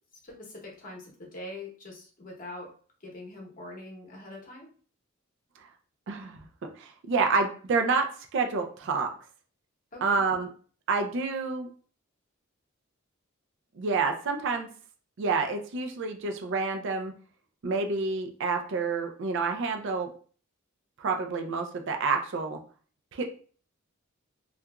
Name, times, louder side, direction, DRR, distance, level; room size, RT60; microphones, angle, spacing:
voice 1, 0.2-2.7 3.0-4.7 9.9-10.0, left 2 dB, 40° left, 0 dB, 0.8 m, -43 dB
voice 2, 6.1-6.5 6.8-9.1 10.0-10.5 10.9-11.7 13.8-14.7 15.2-17.1 17.6-20.1 21.0-22.6 23.1-23.4, right 4 dB, 60° right, 4 dB, 0.4 m, -28 dB
2.8 x 2.4 x 2.2 m, 0.43 s
head